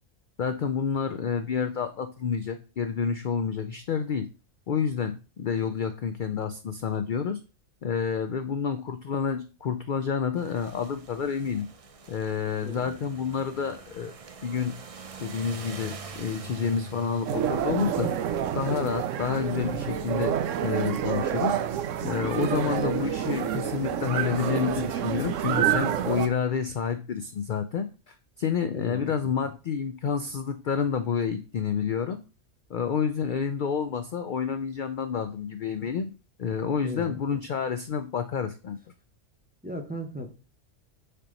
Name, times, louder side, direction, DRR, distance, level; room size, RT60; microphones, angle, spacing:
voice 1, 0.4-4.3 4.7-7.4 7.8-11.7 12.1-14.1 14.4-14.8 15.2-18.1 18.5-20.3 20.6-21.6 22.0-32.2 32.7-36.1 36.4-38.8, left 6 dB, 60° left, 9 dB, 0.5 m, -29 dB
sound 1, 10.4-22.9, right 5 dB, 40° right, 0.5 m, -46 dB
voice 2, 12.6-13.0 28.7-29.3 36.8-37.4 39.6-40.3, equal, 10° right, 3 dB, 0.7 m, -38 dB
sound 2, 17.3-26.3, right 9 dB, 80° right, 1.0 m, -28 dB
6.7 x 2.9 x 5.1 m, 0.33 s
omnidirectional pair, 1.3 m